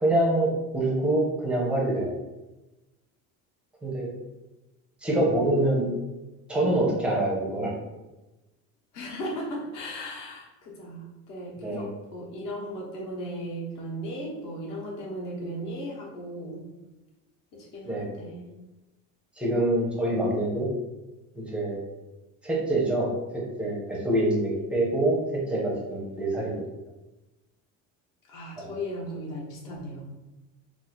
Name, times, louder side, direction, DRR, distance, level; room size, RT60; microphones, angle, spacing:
voice 1, 0.0-2.2 3.8-4.1 5.0-5.9 6.5-7.7 11.6-11.9 17.9-18.1 19.4-20.7 21.4-21.8 22.4-26.5 28.6-28.7, right 1 dB, 5° right, -3 dB, 0.5 m, -25 dB
voice 2, 8.9-16.6 17.5-18.5 28.3-30.1, equal, 60° left, -3 dB, 1.1 m, -36 dB
2.7 x 2.4 x 4.1 m, 1.0 s
cardioid pair, 175°, 37 cm